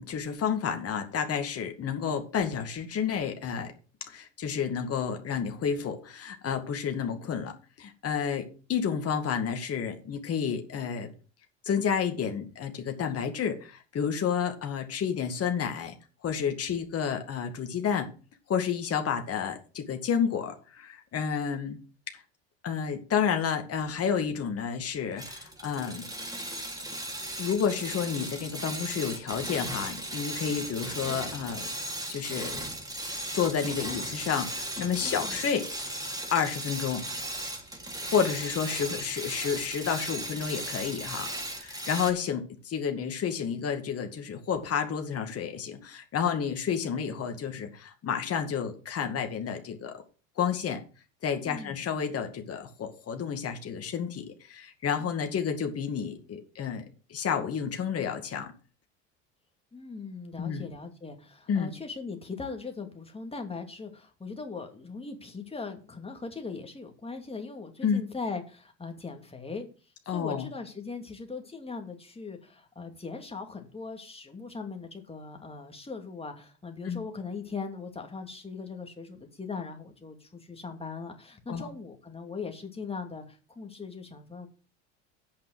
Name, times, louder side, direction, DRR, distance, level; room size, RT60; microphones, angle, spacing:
voice 1, 0.0-3.7 4.1-11.1 11.6-16.0 16.2-18.1 18.5-21.8 22.1-22.2 22.6-26.1 27.4-31.7 32.1-32.7 33.3-35.7 36.3-37.0 38.1-41.3 41.5-50.0 50.4-50.8 51.2-58.5 60.4-60.7 61.5-61.7 67.8-68.0 70.1-70.5 76.8-77.0 81.5-81.7, left 7 dB, 40° left, 2.1 m, -30 dB
sound 1, 25.2-42.1, right 1 dB, 10° right, 3.0 m, -37 dB
voice 2, 35.0-35.4 51.4-51.8 59.7-69.7 70.0-84.5, left 4 dB, 15° left, 2.7 m, -40 dB
8.7 x 5.7 x 7.9 m
hypercardioid pair, 80°, 38 cm